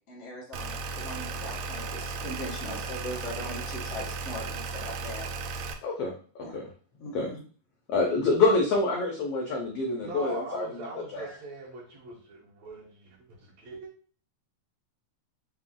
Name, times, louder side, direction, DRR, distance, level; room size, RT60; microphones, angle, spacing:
voice 1, 0.1-5.3 6.4-6.5 7.0-7.4, left 1 dB, 60° left, -4 dB, 0.7 m, -40 dB
sound 1, 0.5-5.7, right 4 dB, 85° right, 1.6 m, -35 dB
voice 2, 5.8-6.6 7.1-7.3 7.9-10.8 11.1-11.3, left 3 dB, 90° left, 0 dB, 1.3 m, -27 dB
voice 3, 10.0-13.9, right 2 dB, 65° right, -2 dB, 2.0 m, -41 dB
5.6 x 2.0 x 3.7 m, 0.41 s
omnidirectional pair, 3.7 m